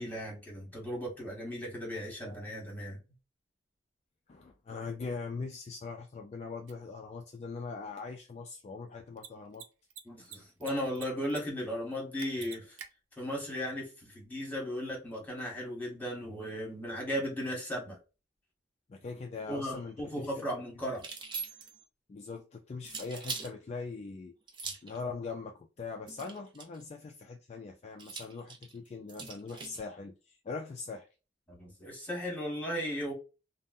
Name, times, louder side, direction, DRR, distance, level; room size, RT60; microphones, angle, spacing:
voice 1, 0.0-3.0 10.0-12.8 13.2-18.0 19.5-21.0 31.5-33.1, equal, 10° left, 1.2 m, -36 dB
voice 2, 4.3-9.7 18.9-20.5 22.1-24.3 24.8-31.1, left 4 dB, 35° left, 0.3 m, -41 dB
Mechanisms, 6.7-6.8 9.1-9.3 9.5-9.6 9.9-10.7 10.9-11.4 11.7-11.8 12.2-12.9, right 8 dB, 85° right, 0.5 m, -45 dB
sound 1, 20.9-21.8 22.8-23.5 24.5-25.0 26.1-26.8 28.0-29.8, right 4 dB, 25° right, 0.5 m, -41 dB
3.6 x 2.1 x 2.5 m
head